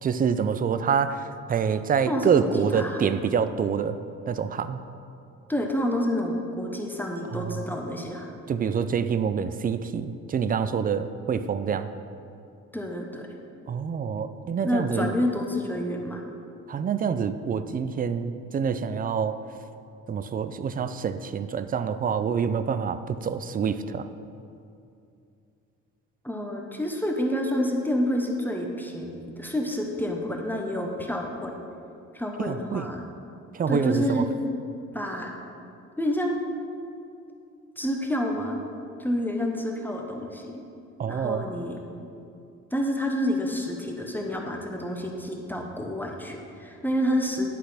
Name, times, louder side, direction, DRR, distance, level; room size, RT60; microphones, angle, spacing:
voice 1, 0.0-4.0 4.3-4.8 7.3-7.7 8.5-11.9 13.7-15.1 16.7-19.4 20.1-24.1 32.4-32.9 33.5-34.2 41.0-41.5, right 6 dB, 30° right, 11 dB, 0.4 m, -26 dB
voice 2, 2.1-3.0 5.5-8.3 12.7-13.3 14.6-16.2 26.2-31.5 32.1-33.0 33.7-34.3 34.9-35.3 36.0-36.4 37.8-38.6 39.0-40.5 41.1-41.8 42.7-47.5, equal, 5° left, 1 dB, 0.9 m, -28 dB
10.5 x 4.1 x 5.0 m, 2.6 s
cardioid pair, 90°, 30 cm